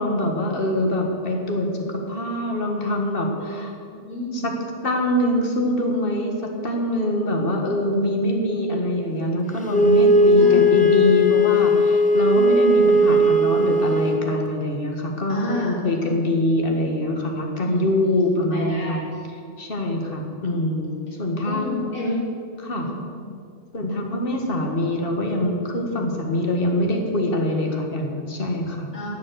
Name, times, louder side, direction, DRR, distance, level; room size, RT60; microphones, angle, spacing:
voice 1, 0.0-3.7 4.3-4.5 4.8-19.0 19.6-21.9 22.6-22.9 23.7-28.9, left 1 dB, 40° left, 2 dB, 1.8 m, -24 dB
voice 2, 3.9-4.5 10.4-10.6 12.3-12.9 15.3-15.7 17.6-18.2 18.5-19.0 19.4-19.5 21.4-22.2 22.7-23.0 28.9-29.1, left 1 dB, 75° left, -7 dB, 4.5 m, -30 dB
Wind instrument woodwind instrument, 9.7-14.2, left 1 dB, 5° left, 0.9 m, -17 dB
12.0 x 7.5 x 7.9 m, 2.3 s
omnidirectional pair, 1.4 m